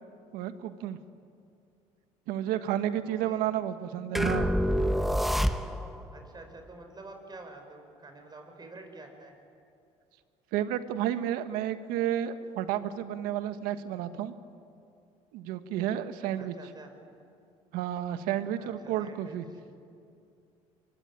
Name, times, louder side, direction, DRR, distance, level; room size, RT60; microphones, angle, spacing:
voice 1, 0.3-1.0 2.3-4.5 10.5-14.3 15.3-16.5 17.7-19.5, right 11 dB, 80° right, 10 dB, 1.5 m, -31 dB
voice 2, 3.1-3.5 6.1-9.3 16.4-16.9 18.6-19.4, right 2 dB, 30° right, 4 dB, 5.5 m, -48 dB
sound 1, 4.2-6.0, equal, ahead, 1.3 m, -27 dB
24.0 x 23.5 x 10.0 m, 2.5 s
supercardioid pair, 80°, 15 cm